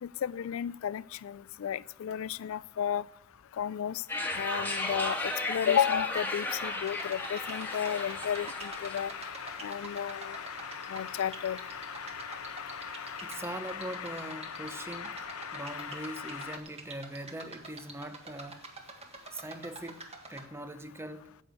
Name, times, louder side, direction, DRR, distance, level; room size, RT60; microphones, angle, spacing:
voice 1, 0.0-3.1 3.6-4.0 4.3-9.1 9.6-10.4 10.9-11.6, left 9 dB, 65° left, 0.3 m, -32 dB
sound 1, 4.1-9.2, left 2 dB, 10° left, 1.4 m, -35 dB
sound 2, 6.5-16.6, left 6 dB, 85° left, 0.9 m, -41 dB
sound 3, 6.8-20.5, right 3 dB, 30° right, 1.6 m, -47 dB
voice 2, 13.2-15.2 15.5-18.6 19.3-20.0 20.3-21.3, right 1 dB, 10° right, 0.7 m, -41 dB
9.7 x 8.0 x 8.2 m
head